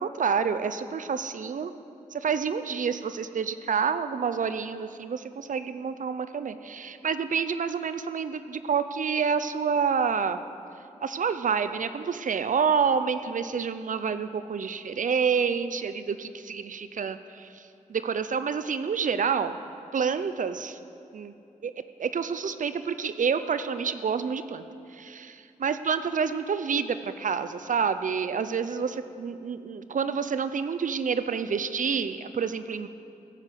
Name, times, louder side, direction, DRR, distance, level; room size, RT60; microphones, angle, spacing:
voice 1, 0.0-1.7 2.1-10.4 11.0-19.6 19.9-20.8 21.1-21.3 21.6-21.7 22.0-24.7 24.9-32.9, right 6 dB, 75° right, 11 dB, 0.6 m, -28 dB
15.5 x 9.0 x 6.9 m, 2.6 s
cardioid pair, 50°, 14 cm